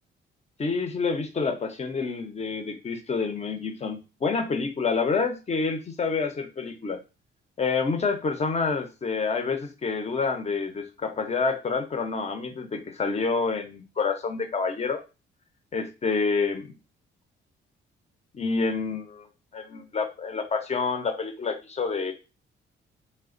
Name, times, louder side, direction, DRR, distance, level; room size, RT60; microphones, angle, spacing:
voice 1, 0.6-7.0 7.6-15.0 15.7-16.7 18.3-19.3 19.5-22.1, left 4 dB, 35° left, 7 dB, 0.7 m, -28 dB
3.3 x 2.2 x 3.7 m, 0.30 s
cardioid pair, 90°, 20 cm